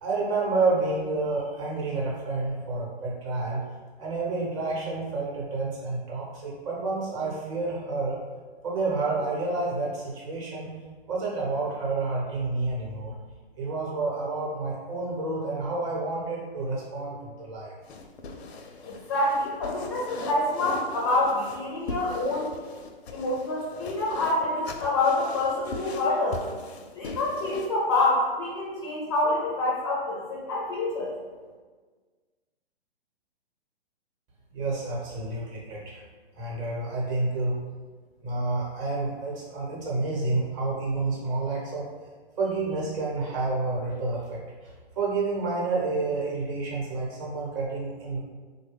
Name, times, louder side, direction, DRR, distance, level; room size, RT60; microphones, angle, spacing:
voice 1, 0.0-3.6 4.0-8.2 8.6-10.7 11.1-13.1 13.6-17.7 34.5-36.0 36.3-37.6 38.2-41.9 42.4-48.2, right 3 dB, 30° right, -4 dB, 0.9 m, -29 dB
sound 1, 17.8-27.7, left 3 dB, 80° left, 0.5 m, -40 dB
voice 2, 18.8-22.5 23.1-26.4 26.9-31.1, left 2 dB, 25° left, -4 dB, 0.4 m, -27 dB
3.2 x 2.2 x 3.3 m, 1.4 s
hypercardioid pair, 135°, 31 cm